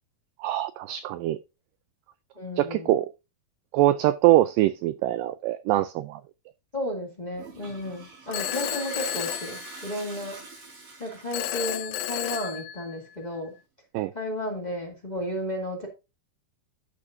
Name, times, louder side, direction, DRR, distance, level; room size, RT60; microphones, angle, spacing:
voice 1, 0.4-1.4 2.6-3.1 3.7-6.2 13.9-14.1, right 14 dB, 90° right, 1.9 m, -23 dB
voice 2, 2.3-3.0 6.7-10.4 11.0-13.5 14.1-15.9, left 1 dB, 20° left, 1.2 m, -33 dB
Toilet flush, 7.3-11.6, right 4 dB, 70° right, 5.4 m, -43 dB
Telephone, 8.3-10.3 11.3-13.3, left 12 dB, 80° left, 2.5 m, -33 dB
12.0 x 6.4 x 2.6 m
omnidirectional pair, 4.4 m